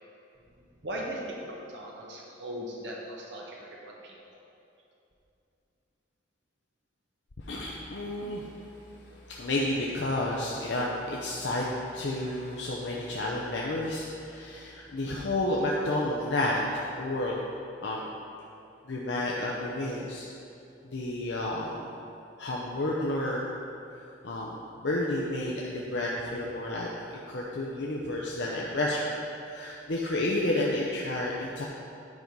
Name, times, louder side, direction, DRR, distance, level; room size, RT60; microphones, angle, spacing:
voice 1, 0.8-3.6 3.9-4.4, right 1 dB, 65° right, -2 dB, 1.2 m, -38 dB
voice 2, 7.4-8.7 9.0-17.4 17.8-18.1 18.9-20.3 20.8-21.9 22.4-23.5 23.9-24.0 24.2-24.5 24.8-26.9 27.3-29.2 29.4-31.6, left 1 dB, 65° left, -3 dB, 0.7 m, -31 dB
9.6 x 4.7 x 5.2 m, 2.7 s
head